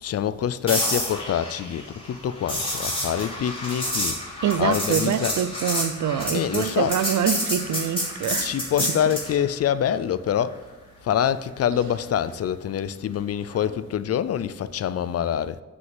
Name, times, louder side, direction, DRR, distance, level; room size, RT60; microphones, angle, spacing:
voice 1, 0.0-4.2 4.6-5.4 6.3-6.9 8.4-10.6 11.0-15.6, left 9 dB, 55° left, 0.4 m, -25 dB
sound 1, 0.7-9.3 13.5-13.7, left 1 dB, 20° left, 3.0 m, -29 dB
voice 2, 4.4-9.2 11.7-11.9, right 9 dB, 80° right, 0.6 m, -26 dB
8.0 x 6.1 x 7.7 m
wide cardioid pair, 170°, 29 cm